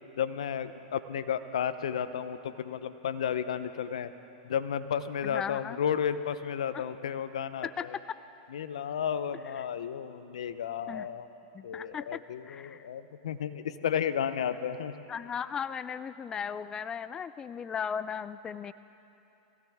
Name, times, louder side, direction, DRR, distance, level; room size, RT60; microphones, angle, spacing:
voice 1, 0.2-4.1 4.4-8.0 8.5-11.3 11.6-14.9, left 8 dB, 80° left, 12 dB, 0.7 m, -33 dB
voice 2, 5.2-5.8 6.7-6.8 7.6-8.2 9.6-9.7 10.9-11.1 11.5-12.8 15.1-18.7, left 7 dB, 20° left, 15 dB, 0.3 m, -37 dB
22.0 x 16.5 x 3.6 m, 2.9 s
hypercardioid pair, 115°, 3 cm